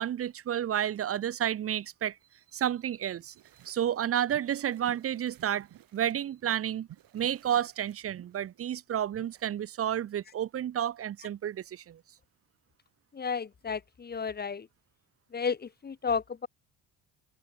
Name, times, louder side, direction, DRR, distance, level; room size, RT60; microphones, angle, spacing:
voice 1, 0.0-2.2 2.5-3.3 3.7-5.7 5.9-6.9 7.1-12.0, right 10 dB, 35° right, 0.8 m, -31 dB
sound 1, 3.4-4.0 4.3-6.2 6.4-9.5, right 13 dB, 60° right, 7.0 m, -55 dB
voice 2, 13.1-14.7 15.3-16.5, left 6 dB, 25° left, 1.3 m, -32 dB
open air
cardioid pair, 120°, 40 cm